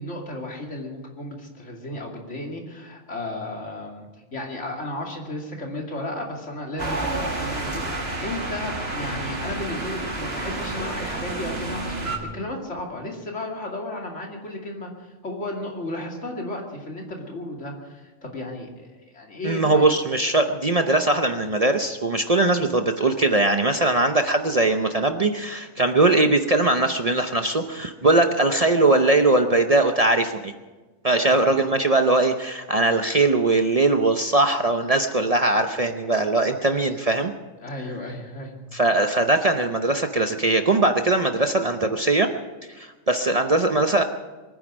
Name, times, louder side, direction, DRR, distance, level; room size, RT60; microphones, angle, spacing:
voice 1, 0.0-19.9 25.8-25.9 31.2-31.4 37.6-38.5, left 1 dB, 70° left, 0 dB, 2.9 m, -34 dB
sound 1, 6.8-12.2, right 2 dB, 55° right, 2.3 m, -29 dB
voice 2, 19.4-30.5 31.0-37.3 38.7-42.3 42.8-44.0, right 2 dB, 35° right, 6 dB, 0.7 m, -20 dB
23.0 x 9.9 x 6.3 m, 1.2 s
omnidirectional pair, 1.3 m